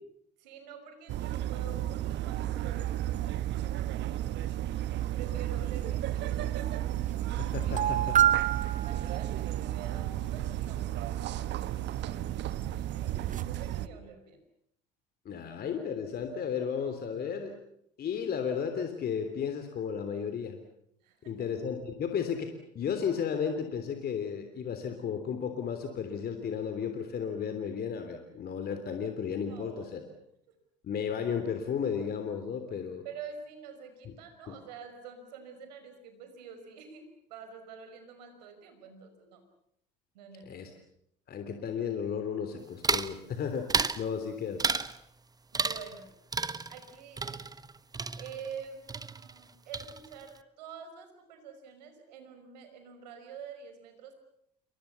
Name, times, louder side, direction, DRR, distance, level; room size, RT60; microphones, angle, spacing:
voice 1, 0.4-4.3 5.1-6.9 7.7-8.1 8.4-14.4 21.0-21.5 29.5-30.0 33.0-37.0 37.3-39.4 40.1-40.6 44.1-44.2 45.5-46.1 46.7-47.4 48.2-54.1, right 6 dB, 80° right, 7 dB, 5.6 m, -47 dB
sound 1, 1.1-13.9, right 13 dB, 55° right, 1.4 m, -33 dB
sound 2, 7.0-7.1 7.3-7.4 7.8-9.6 12.6-12.7 13.1-13.4, right 10 dB, 35° right, 2.0 m, -27 dB
voice 2, 7.4-8.2 15.2-17.5 18.0-20.6 21.3-30.0 30.8-33.0 34.5-34.6 40.5-40.7 41.3-43.7 44.0-44.6, left 7 dB, 50° left, 7 dB, 3.4 m, -34 dB
sound 3, 42.8-43.2 43.7-44.0 44.6-45.0 45.5-46.0 46.3-48.6 48.9-49.5 49.7-50.3, right 3 dB, 20° right, 1.4 m, -32 dB
28.5 x 24.5 x 7.1 m, 0.75 s
hypercardioid pair, 65°, 21 cm